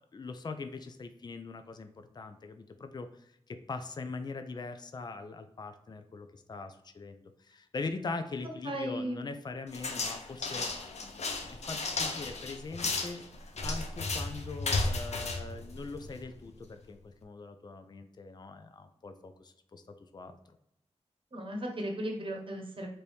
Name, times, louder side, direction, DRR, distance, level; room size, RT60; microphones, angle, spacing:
voice 1, 0.1-11.2 11.7-13.2 13.6-20.4, left 3 dB, 40° left, 8 dB, 0.4 m, -42 dB
voice 2, 8.4-9.3 21.3-22.9, right 1 dB, 50° right, 2 dB, 0.9 m, -36 dB
sound 1, 9.7-16.3, left 3 dB, 75° left, 0.6 m, -34 dB
4.5 x 2.7 x 3.3 m, 0.77 s
wide cardioid pair, 110°, 11 cm